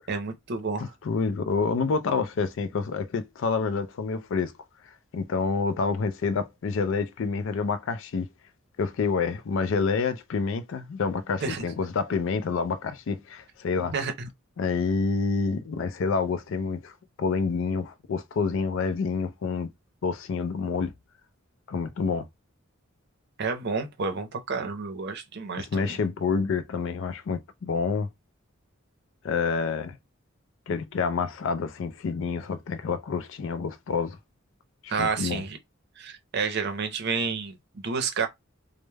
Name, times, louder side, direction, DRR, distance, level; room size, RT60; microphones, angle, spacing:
voice 1, 0.1-0.8 11.4-11.6 13.9-14.3 23.4-26.0 34.9-35.6 36.0-38.3, right 5 dB, 55° right, 0.6 m, -30 dB
voice 2, 0.8-4.5 5.1-8.3 8.8-13.9 14.6-19.7 20.0-20.9 21.7-22.3 25.6-28.1 29.2-30.0 30.7-34.2 34.8-35.4, left 5 dB, 65° left, 0.4 m, -28 dB
2.2 x 2.0 x 3.2 m
head